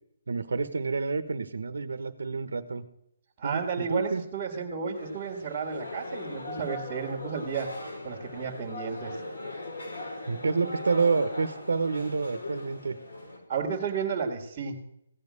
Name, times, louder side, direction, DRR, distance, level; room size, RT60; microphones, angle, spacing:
voice 1, 0.3-2.9 3.4-4.2 10.3-13.0, right 4 dB, 85° right, 10 dB, 1.1 m, -28 dB
voice 2, 3.4-7.7 8.0-9.2 13.5-14.8, right 5 dB, 20° right, -5 dB, 1.9 m, -32 dB
sound 1, 4.9-13.4, left 2 dB, 85° left, 4.9 m, -39 dB
16.0 x 5.4 x 9.7 m, 0.78 s
hypercardioid pair, 170°, 0 cm